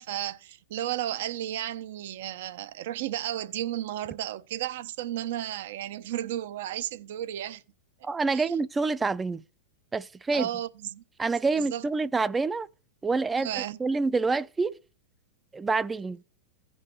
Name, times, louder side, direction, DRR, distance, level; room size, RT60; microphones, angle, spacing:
voice 1, 0.0-7.6 8.3-8.5 10.3-11.0 11.6-11.9 13.4-13.8, right 12 dB, 65° right, 0.7 m, -33 dB
voice 2, 8.0-9.4 9.9-10.5 11.2-12.7 13.0-14.8 15.5-16.2, right 4 dB, 15° right, 0.4 m, -27 dB
16.0 x 5.5 x 3.1 m
hypercardioid pair, 130°, 0 cm